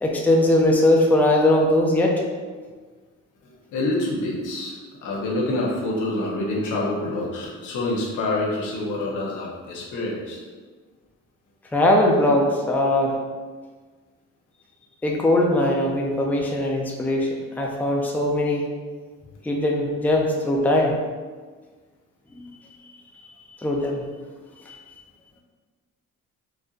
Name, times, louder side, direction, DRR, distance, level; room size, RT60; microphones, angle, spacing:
voice 1, 0.0-2.2 11.7-13.2 15.0-18.6 19.4-21.0 23.6-24.0 24.7-24.8, left 1 dB, 5° left, -1 dB, 0.5 m, -20 dB
voice 2, 3.7-4.7 5.0-10.4, left 2 dB, 80° left, -3 dB, 0.9 m, -26 dB
4.4 x 2.5 x 2.5 m, 1.4 s
cardioid pair, 90°, 30 cm